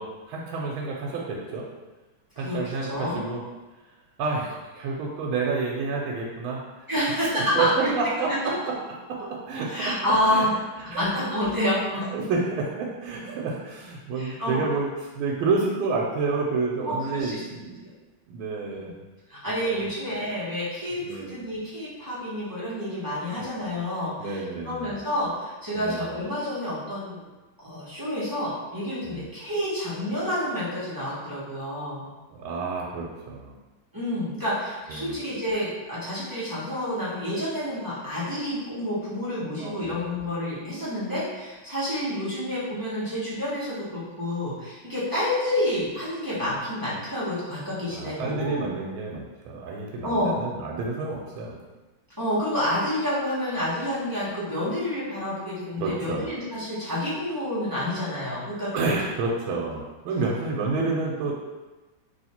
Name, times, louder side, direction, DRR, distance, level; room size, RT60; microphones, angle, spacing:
voice 1, 0.0-1.7 2.4-3.4 4.2-7.7 7.9-8.8 9.1-10.0 10.3-10.5 10.8-11.1 12.0-17.9 18.3-19.0 19.6-19.8 21.0-21.3 23.3-23.4 24.2-24.9 25.7-26.1 29.0-29.3 32.4-33.5 34.9-35.1 39.6-39.9 47.9-51.6 55.8-56.3 58.7-61.3, right 3 dB, 85° right, -2 dB, 1.4 m, -29 dB
voice 2, 2.4-3.2 6.9-7.9 9.7-10.5 10.8-12.1 14.2-14.6 16.9-17.4 18.7-18.8 19.3-27.2 27.6-32.1 33.9-48.7 50.0-50.4 52.2-58.9, left 1 dB, 20° right, -10 dB, 0.5 m, -29 dB
3.1 x 3.0 x 4.2 m, 1.2 s
omnidirectional pair, 2.2 m